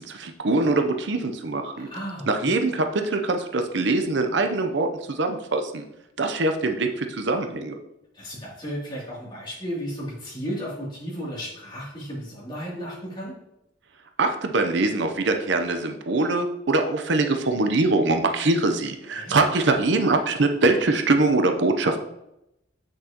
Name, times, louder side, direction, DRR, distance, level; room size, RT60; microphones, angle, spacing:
voice 1, 0.0-1.9 2.3-5.8 6.2-7.7 14.2-22.0, right 2 dB, 65° right, 6 dB, 0.6 m, -23 dB
voice 2, 1.7-2.6 8.1-13.3 19.1-19.3, equal, 25° left, -6 dB, 2.7 m, -34 dB
7.9 x 6.3 x 2.9 m, 0.84 s
head